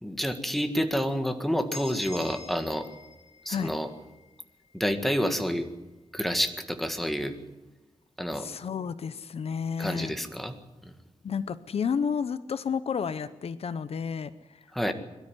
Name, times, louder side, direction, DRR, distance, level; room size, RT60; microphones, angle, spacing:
voice 1, 0.0-2.9 3.5-3.9 4.7-5.7 6.1-7.4 8.2-8.5 9.8-10.5 14.7-14.9, equal, ahead, 6 dB, 1.8 m, -28 dB
sound 1, 1.7-5.5, left 4 dB, 85° left, 1.7 m, -46 dB
voice 2, 8.3-10.1 11.2-14.6 14.9-15.0, left 6 dB, 65° left, 13 dB, 0.8 m, -31 dB
22.5 x 13.0 x 9.8 m, 1.1 s
wide cardioid pair, 145°, 11 cm